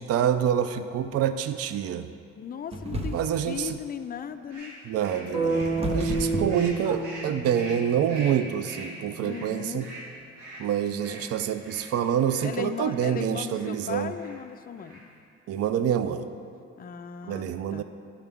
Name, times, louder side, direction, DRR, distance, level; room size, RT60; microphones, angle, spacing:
voice 1, 0.0-2.1 3.1-3.8 4.9-9.9 10.6-14.1 15.5-16.3 17.3-17.8, right 9 dB, 55° right, 11 dB, 0.4 m, -27 dB
voice 2, 2.3-4.7 9.2-9.9 12.4-15.0 16.8-17.8, left 7 dB, 30° left, 9 dB, 0.4 m, -37 dB
sound 1, 2.7-3.5 5.0-7.3, equal, 20° right, 0.8 m, -32 dB
sound 2, 4.5-12.5 12.9-13.2 13.5-13.8 14.1-14.4 14.7-15.2, right 1 dB, 90° right, 1.7 m, -44 dB
sound 3, 5.3-9.4, right 3 dB, 35° right, 1.9 m, -31 dB
11.0 x 5.8 x 3.5 m, 2.4 s
cardioid pair, 90°, 30 cm